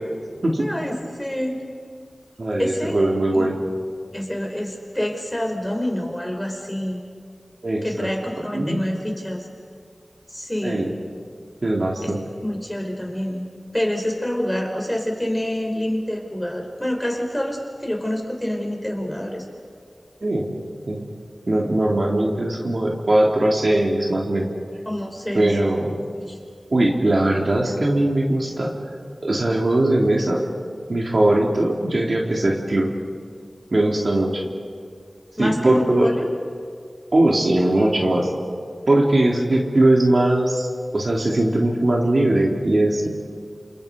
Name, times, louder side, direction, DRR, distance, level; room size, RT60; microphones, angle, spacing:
voice 1, 0.6-1.6 2.6-3.5 4.1-7.0 7.8-9.5 10.3-10.8 12.0-12.1 12.4-13.5 13.7-19.4 24.8-25.6 26.2-26.4 34.4-34.5 35.4-36.3, left 1 dB, 15° left, 2 dB, 5.0 m, -27 dB
voice 2, 2.4-3.5 7.6-8.1 8.5-8.8 10.6-10.9 11.6-12.2 20.2-20.5 20.9-21.0 21.5-24.5 25.3-25.9 26.7-28.8 29.2-30.4 30.9-32.9 33.7-34.4 35.4-36.1 37.1-38.3 38.9-40.7 40.9-43.1, right 1 dB, 65° right, 0 dB, 3.4 m, -20 dB
28.5 x 27.5 x 5.4 m, 2.1 s
wide cardioid pair, 45°, 0 cm